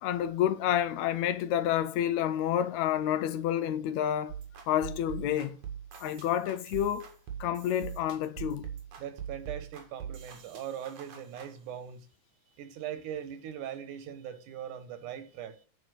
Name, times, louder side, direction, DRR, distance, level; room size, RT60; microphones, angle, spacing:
voice 1, 0.0-4.4 4.7-5.6 6.0-7.1 7.4-8.7, left 10 dB, 75° left, 1.9 m, -29 dB
sound 1, 4.3-11.5, right 8 dB, 70° right, 3.2 m, -42 dB
voice 2, 9.0-12.1 12.6-15.7, right 9 dB, 90° right, 2.7 m, -40 dB
9.5 x 5.2 x 6.3 m
omnidirectional pair, 3.5 m